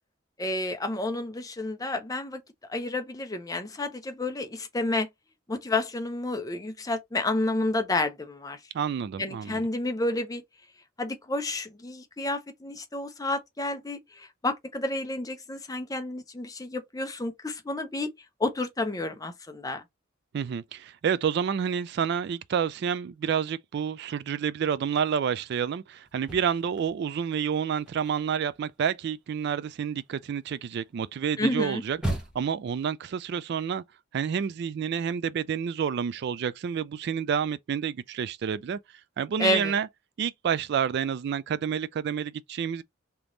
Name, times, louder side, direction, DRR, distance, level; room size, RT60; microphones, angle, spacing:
voice 1, 0.4-2.4 2.7-5.1 5.5-8.6 9.2-10.4 11.0-18.1 18.4-19.8 31.4-31.8 39.4-39.8, left 2 dB, 20° left, 0.7 m, -30 dB
voice 2, 8.7-9.6 20.3-32.0 32.3-33.8 34.1-38.8 39.2-39.9 40.2-42.8, right 7 dB, 55° right, 0.3 m, -29 dB
sound 1, 26.1-27.3 27.6-32.7, right 1 dB, 5° right, 1.2 m, -38 dB
3.5 x 2.9 x 3.8 m
head